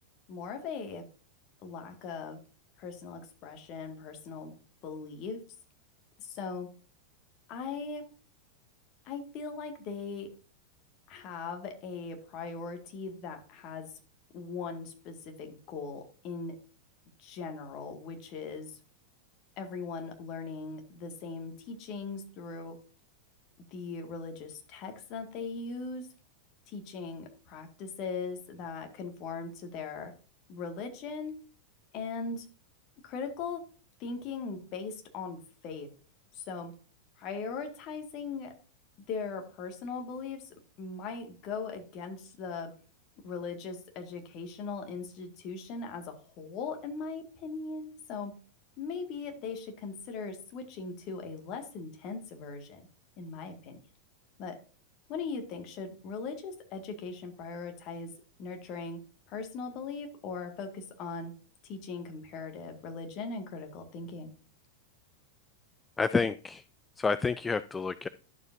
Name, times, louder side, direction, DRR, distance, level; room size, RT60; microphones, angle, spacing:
voice 1, 0.3-1.0 1.6-2.4 2.8-4.5 4.8-5.4 6.2-6.7 7.5-8.0 9.1-10.3 11.1-13.9 14.3-16.6 17.2-18.8 19.6-22.8 23.7-26.1 26.7-30.1 30.5-31.3 31.9-32.4 33.0-33.6 34.0-35.9 36.3-36.7 37.2-38.5 39.1-42.7 43.2-48.3 48.8-52.8 53.2-53.8 54.4-54.6 55.1-58.1 58.4-59.0 59.3-61.3 61.6-64.3, left 4 dB, 40° left, 1.9 m, -39 dB
voice 2, 66.0-66.6 67.0-68.1, left 4 dB, 15° left, 0.3 m, -29 dB
12.0 x 7.2 x 2.6 m
figure-of-eight pair, 90°, 0 cm